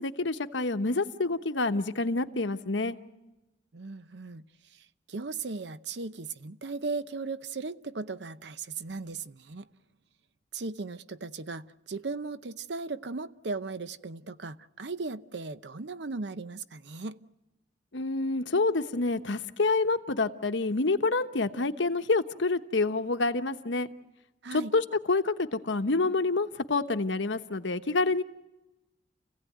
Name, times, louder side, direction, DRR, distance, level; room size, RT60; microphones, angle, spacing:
voice 1, 0.0-3.0 17.9-23.9 24.5-28.2, left 3 dB, 80° left, 1.1 m, -27 dB
voice 2, 3.7-4.4 4.7-9.7 10.5-17.2 24.4-24.7, right 3 dB, 65° right, 0.8 m, -37 dB
29.0 x 16.0 x 9.4 m
head